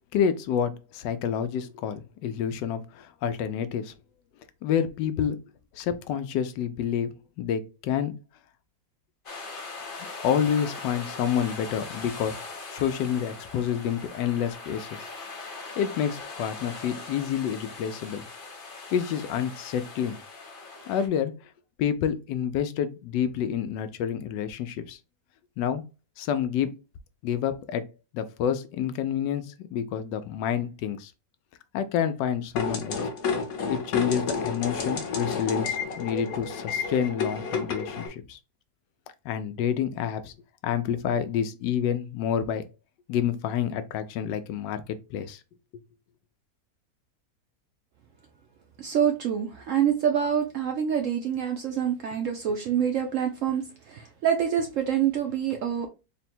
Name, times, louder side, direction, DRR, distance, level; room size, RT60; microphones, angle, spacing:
voice 1, 0.1-3.9 4.6-5.4 5.7-8.1 10.2-15.1 15.8-18.2 18.9-20.2 20.9-21.3 21.8-25.0 25.6-25.8 26.2-26.7 27.2-27.8 28.1-31.1 31.7-33.0 33.7-38.4 39.2-40.3 40.6-42.6 43.1-44.8 45.1-45.4, left 8 dB, 90° left, 1.2 m, -28 dB
sound 1, 9.3-21.1, left 3 dB, 45° left, 0.8 m, -40 dB
sound 2, 32.6-38.1, left 5 dB, 60° left, 1.3 m, -30 dB
voice 2, 48.8-55.9, right 8 dB, 75° right, 0.7 m, -26 dB
3.8 x 2.2 x 4.2 m
omnidirectional pair, 1.8 m